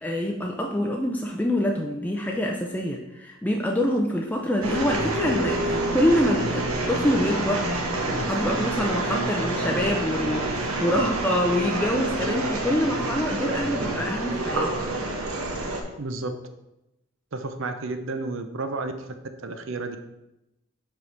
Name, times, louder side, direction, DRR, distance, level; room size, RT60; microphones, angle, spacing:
voice 1, 0.0-14.9, left 1 dB, 10° left, 0 dB, 0.5 m, -26 dB
sound 1, 4.6-15.8, right 2 dB, 85° right, 1.1 m, -27 dB
voice 2, 16.0-16.3 17.3-18.9 19.4-20.0, right 3 dB, 65° right, 8 dB, 0.7 m, -31 dB
5.2 x 4.8 x 5.7 m, 0.92 s
head